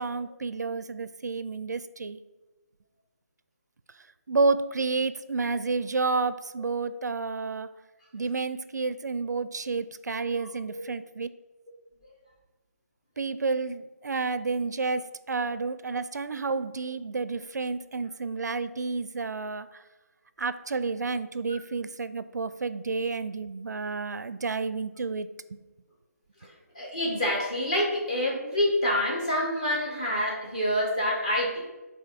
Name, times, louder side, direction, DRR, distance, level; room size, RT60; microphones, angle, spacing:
voice 1, 0.0-2.2 4.3-7.7 8.1-11.3 13.2-19.8 20.4-25.6, right 4 dB, 85° right, 13 dB, 0.5 m, -30 dB
voice 2, 10.4-10.8 26.4-31.6, left 1 dB, 20° left, -3 dB, 1.3 m, -27 dB
7.4 x 2.6 x 5.1 m, 1.2 s
hypercardioid pair, 175°, 9 cm